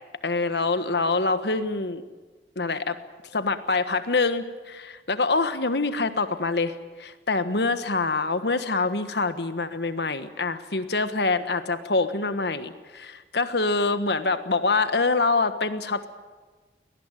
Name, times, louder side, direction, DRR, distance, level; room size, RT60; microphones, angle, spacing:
voice 1, 0.2-2.0 2.5-3.0 3.3-16.1, left 3 dB, 75° left, 10 dB, 1.4 m, -25 dB
23.5 x 18.5 x 9.1 m, 1.4 s
head